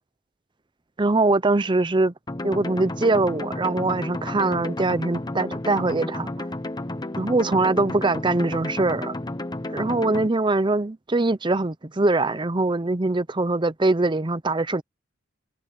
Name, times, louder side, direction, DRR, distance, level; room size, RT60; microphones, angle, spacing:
voice 1, 1.0-2.1 2.4-6.3 7.2-9.1 9.7-14.8, right 2 dB, 25° right, 0.7 m, -22 dB
sound 1, 2.3-10.3, left 1 dB, 20° left, 0.9 m, -32 dB
head